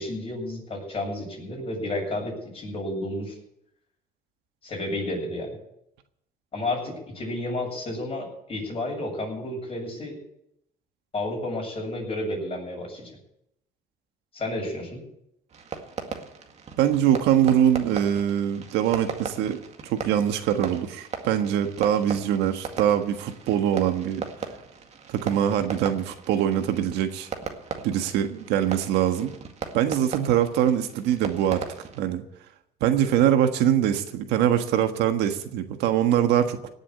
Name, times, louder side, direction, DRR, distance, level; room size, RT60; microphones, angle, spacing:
voice 1, 0.0-3.4 4.6-5.6 6.5-10.2 11.1-13.1 14.3-15.0, left 1 dB, 35° left, -1 dB, 7.7 m, -31 dB
Fireworks, 15.5-32.0, right 5 dB, 40° right, 2.0 m, -38 dB
voice 2, 16.8-24.3 25.1-27.3 27.8-29.3 29.7-31.6 31.9-32.2 32.8-36.7, right 10 dB, 90° right, 7 dB, 1.5 m, -23 dB
18.0 x 7.4 x 8.7 m, 0.78 s
cardioid pair, 110°, 17 cm